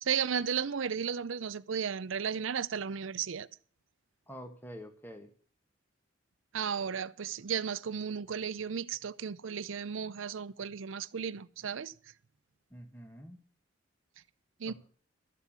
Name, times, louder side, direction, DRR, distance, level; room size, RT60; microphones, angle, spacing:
voice 1, 0.0-3.5 6.5-11.9 14.6-14.7, right 7 dB, 75° right, 0.5 m, -34 dB
voice 2, 4.3-5.3 12.7-13.4 14.7-14.8, equal, 10° left, 1.7 m, -47 dB
13.0 x 8.1 x 7.3 m
head